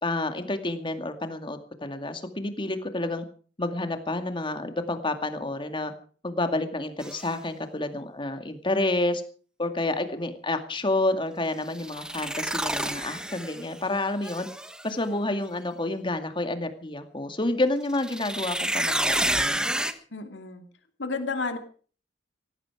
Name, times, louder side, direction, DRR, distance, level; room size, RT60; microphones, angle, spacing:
voice 1, 0.0-3.2 3.6-5.9 6.2-9.2 9.6-14.5 14.8-19.7, left 2 dB, 30° left, 7 dB, 2.3 m, -29 dB
sound 1, 7.0-7.3 11.7-13.8 14.2-14.9 17.9-19.9, right 1 dB, 5° right, 1.3 m, -29 dB
voice 2, 20.1-20.6 21.0-21.6, left 4 dB, 85° left, 7 dB, 2.5 m, -31 dB
18.0 x 15.5 x 4.9 m, 0.42 s
head